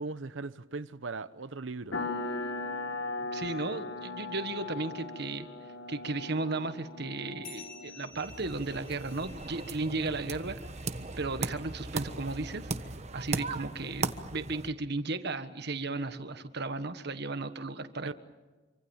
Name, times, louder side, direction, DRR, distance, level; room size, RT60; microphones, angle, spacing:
voice 1, 0.0-2.0 18.0-18.1, right 3 dB, 85° right, 0.9 m, -38 dB
sound 1, 1.9-8.1, left 3 dB, 90° left, 2.1 m, -38 dB
voice 2, 3.3-5.5 5.9-10.6 11.2-12.7 13.1-18.1, right 3 dB, 60° right, 1.5 m, -35 dB
sound 2, 7.4-12.3, left 5 dB, 55° left, 6.3 m, -53 dB
sound 3, 8.1-14.7, right 3 dB, 35° right, 1.2 m, -38 dB
27.0 x 25.0 x 7.2 m
head